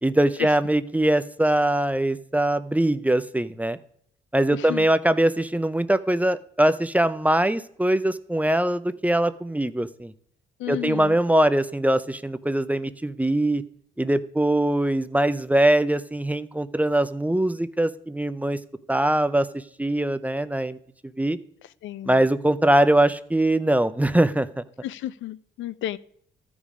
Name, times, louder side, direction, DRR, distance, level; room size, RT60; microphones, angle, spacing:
voice 1, 0.0-3.8 4.3-10.1 10.7-13.6 14.0-18.6 18.9-20.8 21.2-21.4 22.1-24.6, right 1 dB, 5° right, 13 dB, 0.5 m, -22 dB
voice 2, 4.5-4.9 10.6-11.2 21.8-22.2 24.8-26.0, left 13 dB, 75° left, 16 dB, 0.5 m, -32 dB
13.5 x 5.3 x 4.9 m, 0.66 s
cardioid pair, 90°, 20 cm